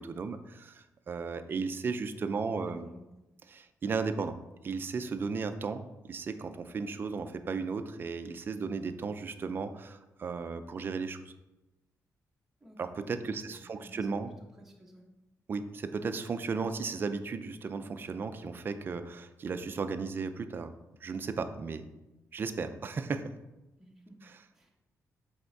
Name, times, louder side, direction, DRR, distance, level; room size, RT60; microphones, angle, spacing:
voice 1, 0.0-2.9 3.5-11.2 12.8-14.3 15.5-20.7 21.0-21.9 22.3-23.3 24.2-24.3, right 4 dB, 35° right, 9 dB, 0.4 m, -35 dB
voice 2, 2.3-3.2 12.6-12.8 13.2-14.2 14.5-15.0 23.8-24.2 24.5-24.7, right 1 dB, 5° right, -1 dB, 1.1 m, -54 dB
7.9 x 3.6 x 4.6 m, 0.98 s
wide cardioid pair, 155°, 6 cm